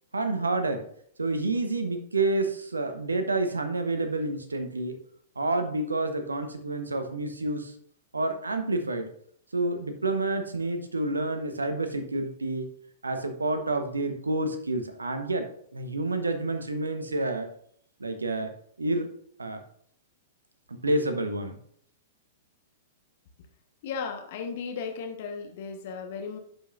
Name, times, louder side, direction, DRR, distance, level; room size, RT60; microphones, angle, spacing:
voice 1, 0.1-0.8 1.2-5.0 5.4-7.7 8.1-9.1 9.5-12.7 13.0-17.5 18.0-18.5 18.8-19.1 19.4-19.6 20.7-21.6, right 2 dB, 80° right, 8 dB, 1.0 m, -29 dB
voice 2, 23.8-26.4, left 5 dB, 50° left, 4 dB, 1.1 m, -35 dB
11.5 x 5.3 x 2.5 m, 0.64 s
figure-of-eight pair, 105°, 0 cm